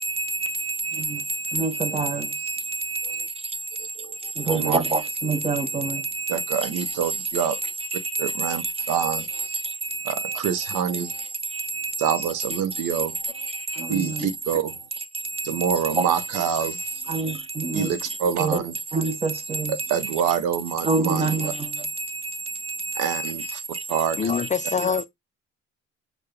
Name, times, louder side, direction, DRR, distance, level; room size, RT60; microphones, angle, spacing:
voice 1, 0.0-3.9 4.2-6.7 7.9-10.4 11.5-12.2 13.3-14.3 15.1-16.1 16.6-17.9 18.4-18.6 18.9-19.9 20.8-24.0 24.6-24.7, right 3 dB, 20° right, 0.7 m, -28 dB
voice 2, 3.8-4.8 6.3-7.7 8.2-9.5 10.0-11.3 12.0-13.5 13.9-14.8 15.4-17.2 17.7-18.7 19.7-21.3 23.0-23.6 23.9-24.3, right 8 dB, 90° right, 0.7 m, -27 dB
voice 3, 24.2-25.0, left 6 dB, 25° left, 0.4 m, -24 dB
4.7 x 2.3 x 3.2 m
cardioid pair, 90°, 30 cm